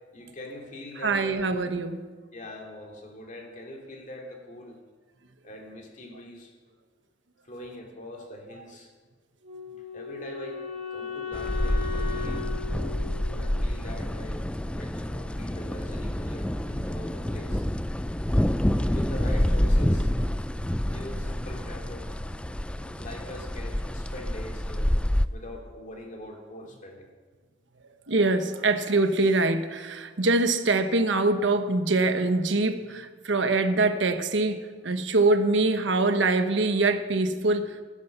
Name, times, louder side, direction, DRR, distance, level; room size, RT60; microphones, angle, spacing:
voice 1, 0.1-1.6 2.3-4.8 5.4-6.5 7.5-8.9 9.9-10.6 10.9-12.5 13.3-17.6 18.9-20.1 20.9-24.9 25.3-27.1, left 1 dB, 45° left, 1 dB, 2.7 m, -43 dB
voice 2, 1.0-2.0 12.8-12.9 28.1-37.8, right 2 dB, 85° right, 8 dB, 1.2 m, -24 dB
Wind instrument woodwind instrument, 9.4-14.5, left 5 dB, 30° right, 1.4 m, -37 dB
sound 1, 11.3-25.3, left 1 dB, 5° left, 0.3 m, -28 dB
17.5 x 10.5 x 5.9 m, 1.4 s
head